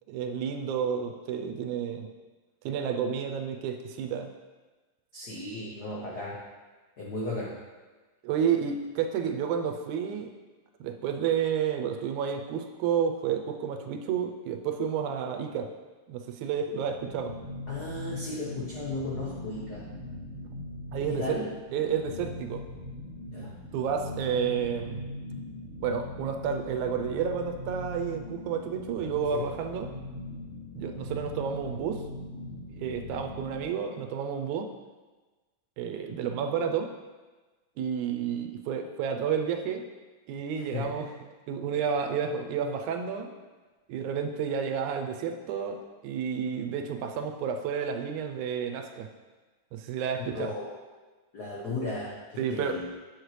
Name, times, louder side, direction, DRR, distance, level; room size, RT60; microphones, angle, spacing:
voice 1, 0.1-2.1 2.7-4.3 8.2-10.3 10.8-15.7 16.1-17.3 20.9-21.4 21.7-22.7 23.7-25.0 25.8-29.9 30.8-32.0 32.8-34.7 35.8-36.9 37.8-39.8 40.3-41.1 41.5-43.3 43.9-49.1 49.7-50.5 52.4-52.8, right 7 dB, 85° right, 5 dB, 2.0 m, -30 dB
voice 2, 5.1-6.4 7.0-7.6 17.7-19.9 21.1-21.5 23.3-23.5 29.3-29.5 40.6-41.1 50.3-50.7 51.3-53.0, left 2 dB, 85° left, -6 dB, 0.8 m, -35 dB
sound 1, 16.6-33.7, left 2 dB, 45° left, 3.3 m, -40 dB
8.0 x 6.5 x 3.2 m, 1.3 s
omnidirectional pair, 3.4 m